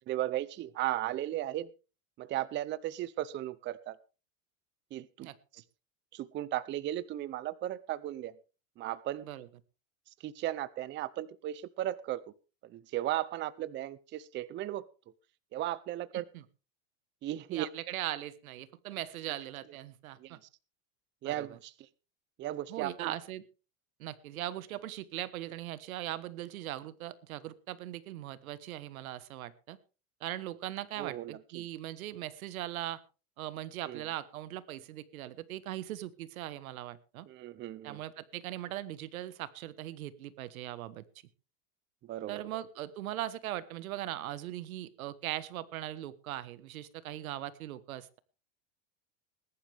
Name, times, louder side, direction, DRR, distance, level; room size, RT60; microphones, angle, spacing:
voice 1, 0.1-1.7 2.2-4.0 4.9-5.6 6.1-8.3 8.8-9.3 10.2-12.2 12.6-14.9 15.5-16.2 17.2-17.7 20.2-20.4 21.2-21.9 22.4-23.1 31.0-31.7 33.8-34.0 37.3-38.0 42.0-42.6, right 14 dB, 25° right, 18 dB, 0.6 m, -36 dB
voice 2, 16.1-16.4 17.5-20.4 21.2-21.6 22.7-23.4 24.0-29.8 30.2-33.0 33.4-37.3 37.8-41.0 42.3-48.2, right 13 dB, 85° right, 17 dB, 1.4 m, -40 dB
20.5 x 11.5 x 3.5 m, 0.33 s
supercardioid pair, 130°, 41 cm